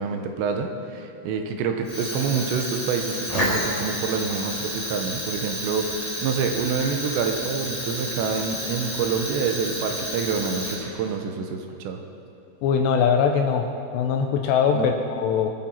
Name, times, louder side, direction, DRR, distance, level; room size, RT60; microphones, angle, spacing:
voice 1, 0.0-12.0 14.7-14.9, right 5 dB, 75° right, 4 dB, 3.0 m, -27 dB
Fire, 1.8-11.1, equal, 10° left, 3.3 m, -30 dB
voice 2, 12.6-13.7 13.9-15.5, left 6 dB, 80° left, 4 dB, 2.6 m, -21 dB
23.5 x 9.5 x 4.5 m, 2.6 s
omnidirectional pair, 5.5 m